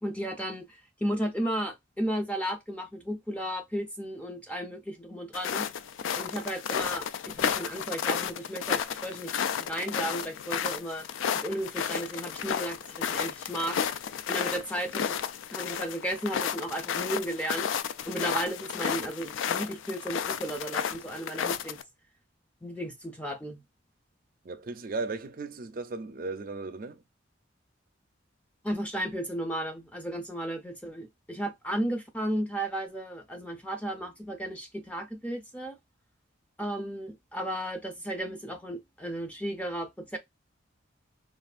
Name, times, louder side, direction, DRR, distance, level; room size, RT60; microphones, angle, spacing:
voice 1, 0.0-5.7 6.1-11.1 11.3-13.8 14.3-15.2 15.5-17.7 18.1-21.8 22.6-23.6 28.6-35.8 36.6-40.2, right 1 dB, 5° left, 0.6 m, -34 dB
sound 1, 5.3-21.8, left 8 dB, 80° left, 0.3 m, -32 dB
voice 2, 24.4-27.0, right 3 dB, 45° right, 0.5 m, -36 dB
3.2 x 2.4 x 2.4 m
head